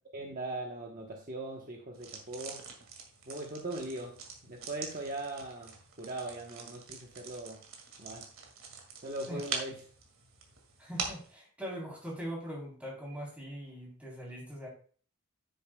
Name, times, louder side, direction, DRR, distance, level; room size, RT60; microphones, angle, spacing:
voice 1, 0.1-2.7 3.3-7.6 8.0-8.3 9.0-9.9, right 2 dB, 40° right, 0 dB, 1.1 m, -40 dB
sound 1, 1.9-11.3, right 5 dB, 60° right, 2.2 m, -44 dB
voice 2, 10.8-14.7, equal, 5° right, -3 dB, 3.7 m, -41 dB
10.5 x 9.4 x 2.3 m, 0.43 s
head